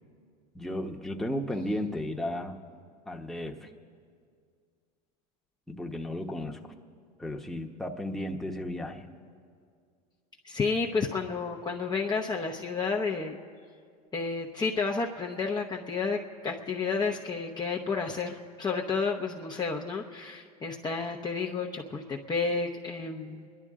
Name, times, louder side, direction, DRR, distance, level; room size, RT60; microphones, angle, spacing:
voice 1, 0.5-2.6 3.1-3.7 5.7-6.8 7.2-9.1, left 1 dB, ahead, 1 dB, 1.2 m, -34 dB
voice 2, 10.4-13.4 14.1-23.5, left 4 dB, 20° left, 0 dB, 0.9 m, -31 dB
27.5 x 11.5 x 3.7 m, 2.2 s
hypercardioid pair, 95°, 20 cm